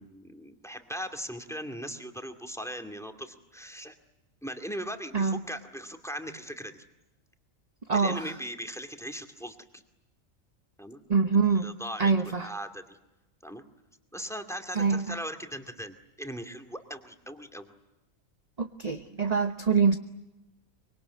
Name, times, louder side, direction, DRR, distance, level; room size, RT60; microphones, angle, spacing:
voice 1, 0.0-3.9 4.4-6.8 7.9-9.8 10.8-11.0 11.4-13.0 13.4-13.6 14.1-17.7, equal, ahead, 7 dB, 2.2 m, -39 dB
voice 2, 7.9-8.2 11.1-11.7 12.0-12.5 14.8-15.0 18.6-20.0, right 5 dB, 35° right, 7 dB, 1.0 m, -24 dB
25.0 x 23.5 x 9.6 m, 0.98 s
omnidirectional pair, 1.4 m